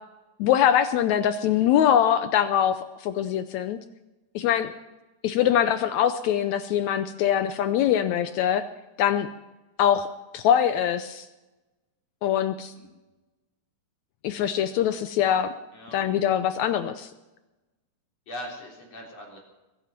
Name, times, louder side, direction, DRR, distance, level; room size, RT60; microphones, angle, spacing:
voice 1, 0.4-3.8 4.3-4.7 5.2-8.6 9.0-9.3 9.8-10.1 10.3-11.3 12.2-12.7 14.2-15.5 15.9-17.1, left 10 dB, 80° left, 11 dB, 1.6 m, -23 dB
voice 2, 18.3-19.4, equal, 45° left, -1 dB, 4.8 m, -40 dB
22.0 x 11.0 x 5.9 m, 1.1 s
omnidirectional pair, 4.0 m